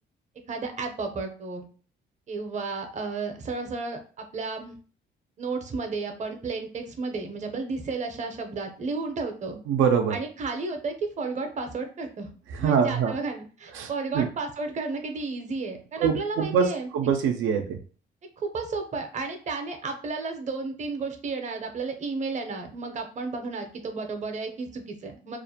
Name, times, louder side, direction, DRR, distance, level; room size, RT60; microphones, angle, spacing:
voice 1, 0.5-1.7 2.3-4.8 5.4-9.6 10.1-16.9 18.4-25.4, right 3 dB, 35° right, 5 dB, 0.6 m, -32 dB
voice 2, 9.7-10.2 12.5-13.2 13.7-14.3 16.0-17.8, right 7 dB, 80° right, 4 dB, 0.4 m, -24 dB
2.4 x 2.1 x 2.7 m, 0.39 s
cardioid pair, 90°, 20 cm